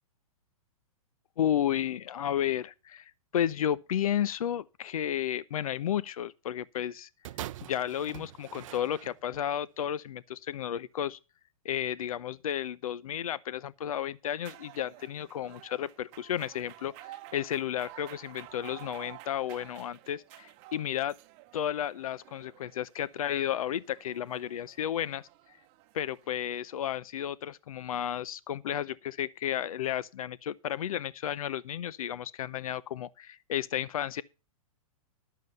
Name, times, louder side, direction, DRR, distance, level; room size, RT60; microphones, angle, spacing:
voice 1, 1.4-7.1 7.7-11.2 11.6-21.2 21.5-25.2 25.9-34.2, left 10 dB, 75° left, 0.7 m, -32 dB
sound 1, 7.2-9.5 10.3-10.4, right 13 dB, 60° right, 0.6 m, -43 dB
sound 2, 14.4-26.4, right 16 dB, 35° right, 0.9 m, -52 dB
11.0 x 7.5 x 5.4 m
hypercardioid pair, 130°, 18 cm